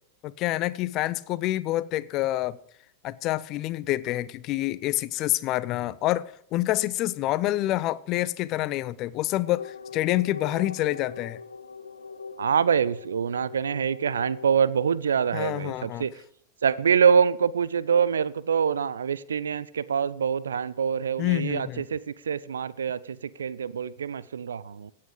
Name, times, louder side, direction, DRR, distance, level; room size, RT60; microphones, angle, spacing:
voice 1, 0.2-2.6 3.0-11.4 15.3-16.1 21.2-21.8, left 16 dB, 40° left, 0.6 m, -27 dB
sound 1, 9.5-14.5, left 5 dB, 75° left, 0.6 m, -41 dB
voice 2, 12.4-16.1 16.6-22.0 22.3-24.9, right 7 dB, 70° right, 0.5 m, -25 dB
16.0 x 8.7 x 5.1 m
figure-of-eight pair, 90°, 0 cm